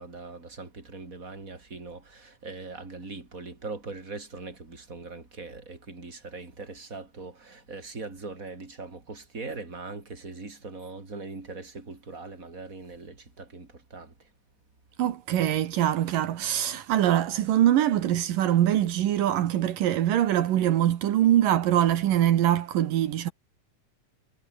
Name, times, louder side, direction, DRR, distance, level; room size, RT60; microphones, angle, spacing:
voice 1, 0.0-14.3, right 3 dB, 25° right, 4.7 m, -41 dB
voice 2, 15.0-23.3, right 12 dB, 80° right, 3.1 m, -23 dB
omnidirectional pair, 3.9 m